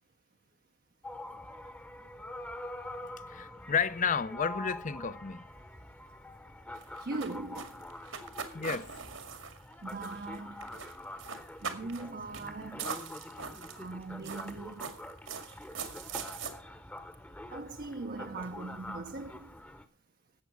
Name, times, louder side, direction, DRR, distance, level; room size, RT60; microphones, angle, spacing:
sound 1, 1.0-19.8, left 1 dB, 10° left, 0.9 m, -45 dB
voice 1, 2.0-5.4 8.5-8.9, left 6 dB, 40° left, 0.6 m, -33 dB
sound 2, 6.7-10.4 10.6-10.9 11.2-12.1 12.3-12.5 12.8-13.9 14.2-16.5, right 6 dB, 80° right, 2.1 m, -41 dB
voice 2, 7.0-7.9 9.8-10.8 11.6-12.9 13.7-14.9 17.5-19.5, right 3 dB, 45° right, 0.6 m, -40 dB
13.0 x 8.3 x 6.0 m
head